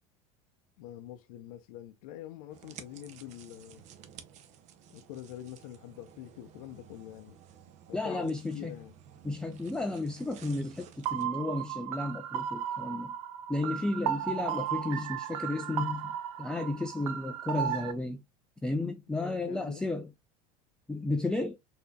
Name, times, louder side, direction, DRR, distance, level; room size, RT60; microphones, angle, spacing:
voice 1, 0.8-3.9 4.9-7.4 7.9-9.0 19.2-19.9, left 12 dB, 80° left, 0.6 m, -45 dB
sound 1, 2.5-11.2, right 9 dB, 45° right, 0.6 m, -53 dB
voice 2, 7.9-8.7 9.2-13.1 13.5-18.2 18.6-20.1 20.9-21.6, left 2 dB, 5° left, 0.3 m, -33 dB
sound 2, 11.1-17.9, right 10 dB, 90° right, 0.6 m, -35 dB
4.1 x 2.8 x 2.2 m
supercardioid pair, 135°, 17 cm